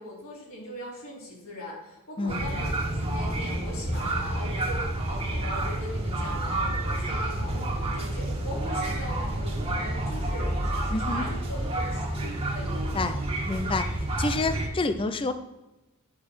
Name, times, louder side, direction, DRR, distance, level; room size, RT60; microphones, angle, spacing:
voice 1, 0.0-13.2, left 1 dB, 65° left, -5 dB, 3.9 m, -40 dB
voice 2, 2.2-2.5 10.9-11.3 12.9-13.2 13.5-13.9 14.2-15.3, left 3 dB, 25° left, 10 dB, 0.4 m, -28 dB
sound 1, 2.3-14.7, right 1 dB, 25° right, 1.7 m, -29 dB
8.8 x 6.6 x 5.6 m, 1.0 s
head